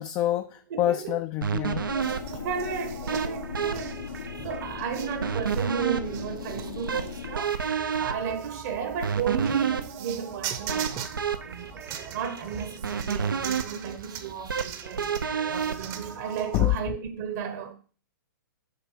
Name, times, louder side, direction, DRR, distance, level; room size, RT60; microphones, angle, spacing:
voice 1, 0.0-1.9 16.5-16.7, left 14 dB, 25° left, 0.4 m, -26 dB
voice 2, 0.7-1.2 2.4-7.6 7.9-11.1 11.4-11.7 12.1-15.2 15.5-17.7, right 7 dB, 50° right, 1.0 m, -33 dB
sound 1, 1.4-16.6, right 6 dB, 90° right, 0.7 m, -32 dB
sound 2, 1.7-7.4, left 8 dB, 65° left, 0.8 m, -39 dB
sound 3, 2.0-16.8, right 9 dB, 30° right, 0.8 m, -42 dB
6.7 x 4.0 x 6.5 m
hypercardioid pair, 130°, 11 cm